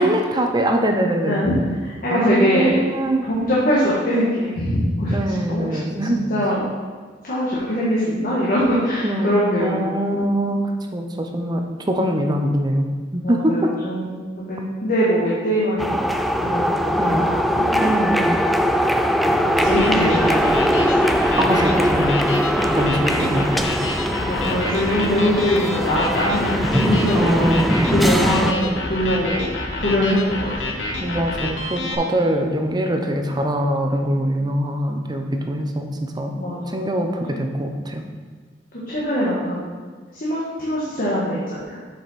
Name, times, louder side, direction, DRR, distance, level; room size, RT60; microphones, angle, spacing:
voice 1, 0.0-1.4 2.1-3.3 5.1-6.3 9.0-12.9 13.1-13.7 17.0-17.3 17.8-18.5 21.4-22.4 22.7-23.8 27.1-27.9 31.0-36.3 36.7-38.0, right 1 dB, 25° right, 4 dB, 0.7 m, -23 dB
voice 2, 1.8-2.9 3.2-5.2 5.5-5.8 6.1-6.6 7.2-10.2 13.2-16.1 16.4-17.9 19.2-21.2 23.3-23.6 24.2-27.6 27.9-30.7 36.3-36.8 38.9-39.7 40.1-41.8, equal, 50° left, -7 dB, 1.5 m, -23 dB
sound 1, 15.8-28.5, equal, ahead, 0.3 m, -21 dB
sound 2, 19.6-31.9, left 2 dB, 85° left, 1.0 m, -28 dB
7.5 x 5.3 x 4.1 m, 1.5 s
head